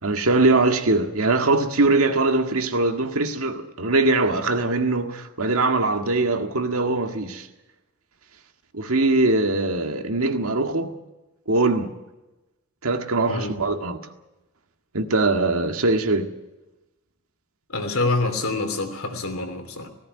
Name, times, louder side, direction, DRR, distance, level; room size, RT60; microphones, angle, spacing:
voice 1, 0.0-7.5 8.7-11.0 11.5-11.9 12.8-14.0 14.9-16.3, right 2 dB, 80° right, 1.9 m, -22 dB
voice 2, 13.3-13.6 17.7-19.9, left 2 dB, 80° left, 3.0 m, -26 dB
17.5 x 15.5 x 9.7 m
head